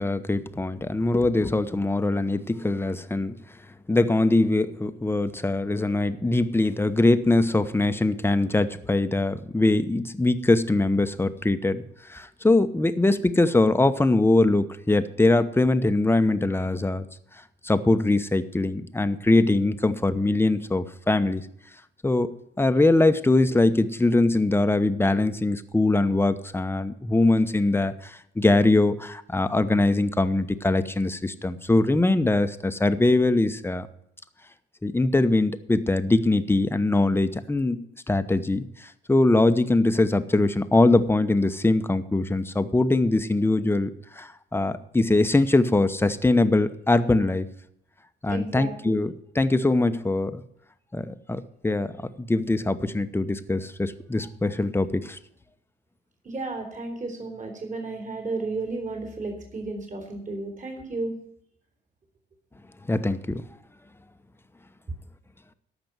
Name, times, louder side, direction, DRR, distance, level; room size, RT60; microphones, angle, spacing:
voice 1, 0.0-3.3 3.9-11.8 12.1-17.0 17.6-21.4 22.0-22.3 22.6-33.9 34.8-38.6 39.1-47.5 48.2-50.4 50.9-51.9 52.3-55.2 62.9-63.4, left 2 dB, 10° left, 11 dB, 0.9 m, -22 dB
voice 2, 48.3-49.0 56.2-61.1, right 3 dB, 40° right, 2 dB, 3.8 m, -33 dB
13.5 x 6.0 x 9.2 m, 0.72 s
cardioid pair, 90°, 20 cm